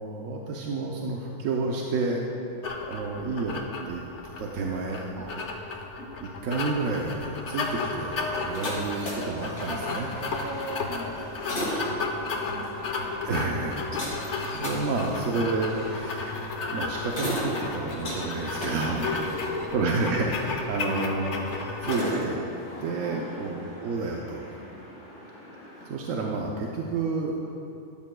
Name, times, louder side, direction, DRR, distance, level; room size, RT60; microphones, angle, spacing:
voice 1, 0.0-2.2 2.8-3.6 3.9-5.0 6.4-10.1 11.4-11.5 13.2-13.9 14.3-16.3 16.7-19.1 19.7-21.3 21.8-22.4 22.8-23.5 23.8-24.5 25.9-27.3, right 3 dB, 85° right, -1 dB, 1.1 m, -30 dB
sound 1, 2.6-22.0, left 3 dB, 65° left, 1.1 m, -33 dB
voice 2, 5.7-6.2 10.2-13.3 18.8-19.9 23.0-23.8 24.6-24.8, equal, 15° right, -3 dB, 1.7 m, -41 dB
sound 2, 7.4-25.9, equal, 80° left, 2.9 m, -38 dB
12.5 x 12.5 x 2.2 m, 2.8 s
omnidirectional pair, 1.3 m